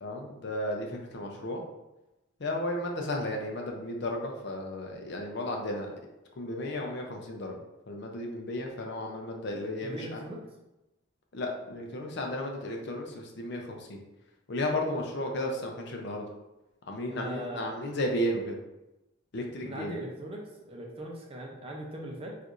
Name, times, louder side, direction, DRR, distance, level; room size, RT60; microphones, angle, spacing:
voice 1, 0.0-1.6 2.4-5.9 6.4-7.6 7.9-10.2 11.3-14.0 14.5-16.3 16.9-18.6 19.3-19.9, left 1 dB, 50° left, 2 dB, 0.5 m, -34 dB
voice 2, 9.8-10.5 15.2-15.4 17.1-17.7 19.6-22.4, right 1 dB, 25° right, -1 dB, 0.5 m, -40 dB
4.4 x 2.4 x 2.5 m, 0.97 s
head